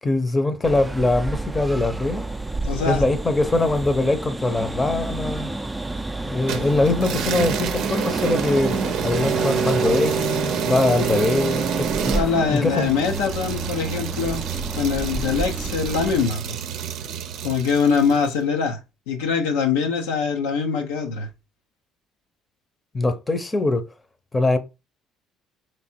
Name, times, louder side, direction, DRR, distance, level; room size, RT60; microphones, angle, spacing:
voice 1, 0.0-2.3 2.8-5.5 6.2-12.1 12.5-12.9 22.9-23.9 24.3-24.6, left 2 dB, 20° left, 0.8 m, -22 dB
sound 1, 0.6-16.3, right 2 dB, 10° right, 0.5 m, -30 dB
voice 2, 2.6-3.0 11.1-11.2 12.1-14.5 14.8-16.6 17.4-18.8 19.1-21.3, left 5 dB, 90° left, 0.7 m, -23 dB
sound 2, 6.5-18.3, right 7 dB, 70° right, 0.6 m, -27 dB
3.4 x 3.1 x 4.3 m
supercardioid pair, 70°, 0 cm